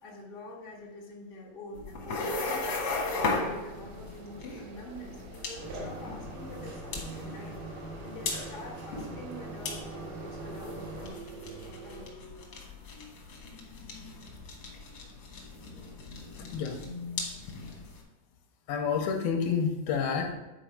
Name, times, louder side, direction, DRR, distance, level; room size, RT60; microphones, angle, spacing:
voice 1, 0.0-2.7 3.0-11.2 11.6-12.6, left 1 dB, 40° left, -3 dB, 1.0 m, -46 dB
sound 1, 1.7-18.0, left 3 dB, 60° left, 1.5 m, -37 dB
sound 2, 3.2-12.1, right 5 dB, 85° right, 3.0 m, -48 dB
sound 3, 5.6-11.1, right 2 dB, 65° right, 2.9 m, -42 dB
voice 2, 16.4-16.8 18.7-20.3, left 6 dB, 80° left, 3 dB, 2.5 m, -29 dB
9.2 x 4.6 x 4.6 m, 1.0 s
omnidirectional pair, 4.6 m